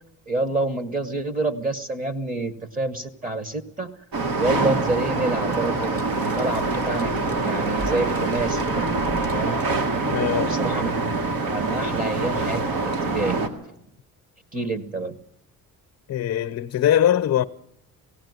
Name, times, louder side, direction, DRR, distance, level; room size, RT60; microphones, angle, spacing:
voice 1, 0.3-3.9 4.3-7.1 7.4-9.6 10.3-10.9 11.5-13.5 14.5-15.2, right 2 dB, 25° right, 1.2 m, -28 dB
sound 1, 4.1-13.5, right 3 dB, 90° right, 2.1 m, -25 dB
sound 2, 5.5-10.4, equal, 40° right, 2.9 m, -36 dB
voice 2, 10.0-10.5 16.1-17.4, left 11 dB, 55° left, 0.8 m, -21 dB
18.0 x 16.5 x 9.5 m
cardioid pair, 145°, 35 cm